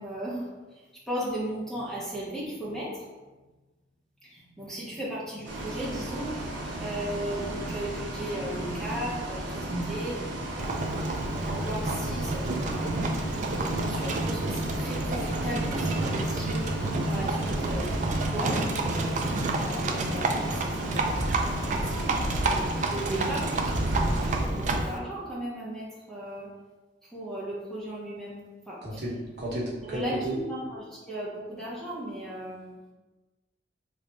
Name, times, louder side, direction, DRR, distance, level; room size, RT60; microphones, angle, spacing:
voice 1, 0.0-3.1 4.2-17.9 18.1-24.3 24.6-26.5 27.0-29.0 29.8-32.8, right 1 dB, 5° left, -8 dB, 0.8 m, -37 dB
Bus, 5.4-24.4, right 1 dB, 85° right, 0.8 m, -35 dB
Livestock farm animals working animals, 10.6-25.0, right 2 dB, 40° right, 0.3 m, -29 dB
voice 2, 28.8-30.4, right 1 dB, 60° right, -6 dB, 1.0 m, -33 dB
3.2 x 2.4 x 3.9 m, 1.2 s
head